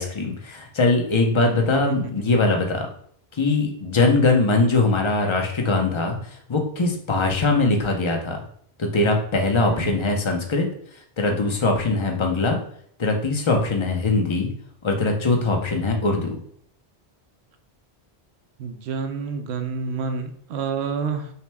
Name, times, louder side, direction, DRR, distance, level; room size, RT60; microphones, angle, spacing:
voice 1, 0.0-2.9 3.4-6.2 6.5-8.4 8.8-10.7 11.2-12.6 13.0-14.5 14.8-16.4, left 3 dB, 30° left, 2 dB, 0.7 m, -21 dB
voice 2, 1.7-2.2 9.6-10.1 18.6-21.3, right 5 dB, 85° right, 7 dB, 0.8 m, -29 dB
5.6 x 2.2 x 3.4 m, 0.63 s
omnidirectional pair, 1.1 m